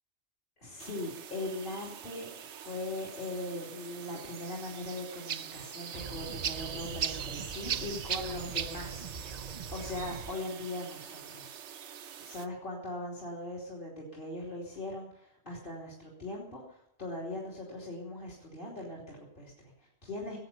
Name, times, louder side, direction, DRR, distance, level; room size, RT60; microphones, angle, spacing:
voice 1, 0.6-20.4, left 2 dB, 45° left, -4 dB, 3.2 m, -40 dB
sound 1, 0.8-12.5, right 9 dB, 75° right, 1.1 m, -41 dB
sound 2, 5.9-10.3, right 5 dB, 35° right, 1.0 m, -44 dB
17.5 x 8.9 x 7.3 m, 0.79 s
omnidirectional pair, 1.2 m